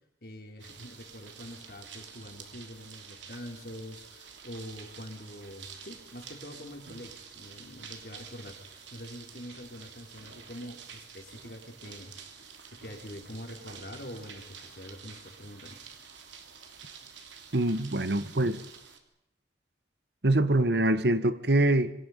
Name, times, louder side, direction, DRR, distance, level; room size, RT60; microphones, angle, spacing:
voice 1, 0.2-12.1 12.7-15.8, equal, 55° left, 4.8 m, -45 dB
sound 1, 0.6-19.0, right 6 dB, 85° right, 3.2 m, -49 dB
voice 2, 17.5-18.6 20.2-21.9, right 1 dB, 65° right, 1.3 m, -24 dB
27.5 x 25.5 x 5.4 m
head